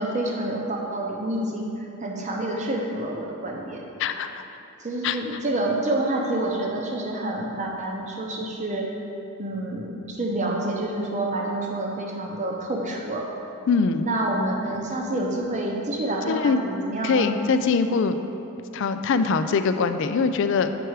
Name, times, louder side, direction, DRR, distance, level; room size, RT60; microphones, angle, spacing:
voice 1, 0.0-3.8 4.8-8.9 9.4-13.3 14.0-17.3, right 1 dB, 35° right, -1 dB, 0.8 m, -28 dB
voice 2, 4.0-4.5 5.0-5.2 13.7-14.1 16.3-16.6 17.0-18.2 18.7-20.7, left 5 dB, 55° left, 9 dB, 0.3 m, -22 dB
7.7 x 4.6 x 4.7 m, 2.9 s
head